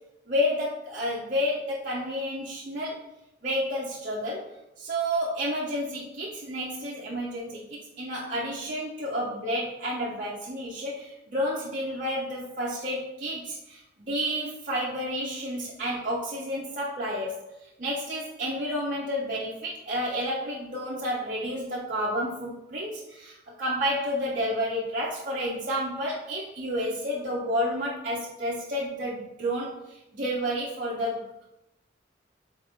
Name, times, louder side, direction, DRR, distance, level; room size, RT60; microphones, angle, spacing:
voice 1, 0.3-3.0 3.4-4.5 4.8-17.4 17.8-31.4, equal, 40° right, -6 dB, 0.7 m, -30 dB
3.7 x 3.6 x 3.6 m, 0.87 s
head